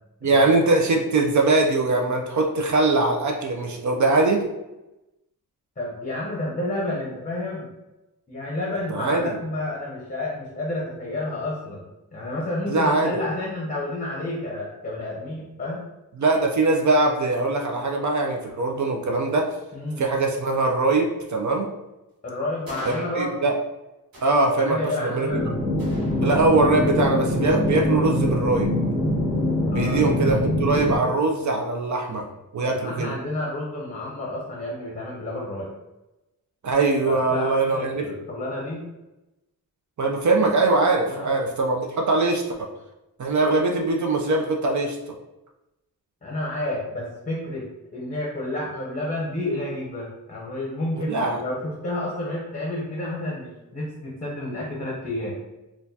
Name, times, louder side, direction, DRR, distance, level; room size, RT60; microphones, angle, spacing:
voice 1, 0.2-4.5 8.9-9.4 12.7-13.2 16.2-19.6 20.0-21.7 22.9-23.5 24.2-25.4 26.2-28.7 29.7-32.3 32.5-33.1 36.6-38.1 40.0-42.7 43.2-45.0 51.0-51.4, right 3 dB, 55° right, 1 dB, 0.5 m, -22 dB
voice 2, 5.8-7.7 8.3-11.8 12.1-15.8 19.7-20.0 22.2-23.4 24.6-25.4 29.6-30.0 32.6-35.7 37.0-38.9 41.1-41.3 46.2-55.3, left 1 dB, 25° left, -4 dB, 0.7 m, -30 dB
sound 1, 22.7-23.7 24.1-25.1 25.8-26.8, equal, 70° right, 1.1 m, -42 dB
sound 2, 25.3-31.0, left 1 dB, 15° right, 0.9 m, -24 dB
4.2 x 2.3 x 2.7 m, 0.98 s
wide cardioid pair, 135°, 36 cm